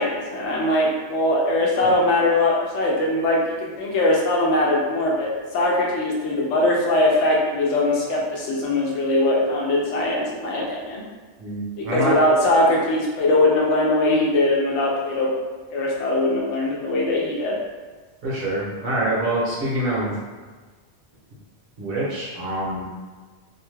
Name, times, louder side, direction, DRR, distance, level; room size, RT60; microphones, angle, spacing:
voice 1, 0.0-11.0 11.8-15.3 15.7-17.6, left 1 dB, 75° left, -3 dB, 0.9 m, -21 dB
voice 2, 11.4-12.1 18.2-20.1 21.8-22.8, right 1 dB, 55° right, -6 dB, 0.9 m, -25 dB
2.6 x 2.2 x 3.2 m, 1.4 s
omnidirectional pair, 1.2 m